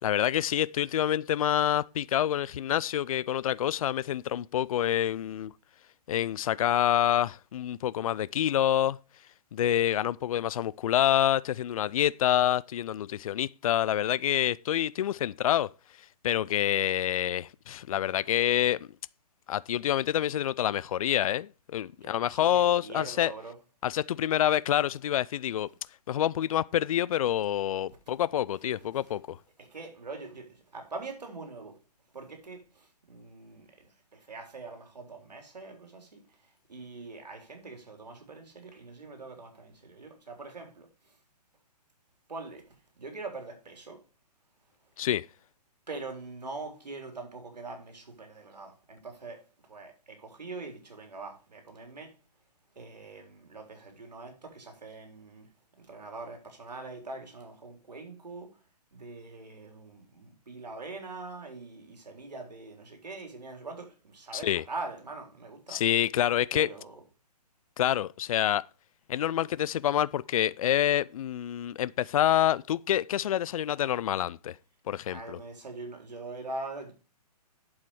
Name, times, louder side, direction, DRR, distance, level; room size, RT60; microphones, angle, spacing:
voice 1, 0.0-5.5 6.1-9.0 9.5-15.7 16.2-18.8 19.5-23.3 23.8-25.7 26.1-29.4 45.0-45.3 64.3-64.6 65.7-66.7 67.8-68.7 69.1-74.6 74.9-75.4, left 11 dB, 60° left, 0.4 m, -27 dB
voice 2, 22.0-23.5 29.6-31.8 32.1-36.2 36.7-40.9 42.3-42.6 43.0-44.0 45.9-52.1 52.8-55.5 55.8-58.5 58.9-65.8 66.5-67.0 75.1-76.9, right 3 dB, 80° right, 4.0 m, -43 dB
8.7 x 7.3 x 4.7 m
hypercardioid pair, 140°, 21 cm